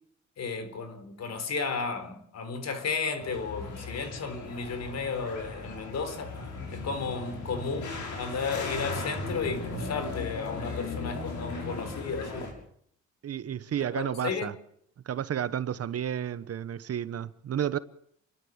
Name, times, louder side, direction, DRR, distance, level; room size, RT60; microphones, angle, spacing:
voice 1, 0.4-6.3 6.7-12.5 13.8-14.5, left 5 dB, 60° left, 4.1 m, -33 dB
sound 1, 3.2-12.5, left 3 dB, 75° left, 6.9 m, -37 dB
voice 2, 13.2-14.5 15.1-17.8, right 9 dB, 55° right, 1.1 m, -31 dB
29.5 x 12.5 x 7.4 m
cardioid pair, 90°, 30 cm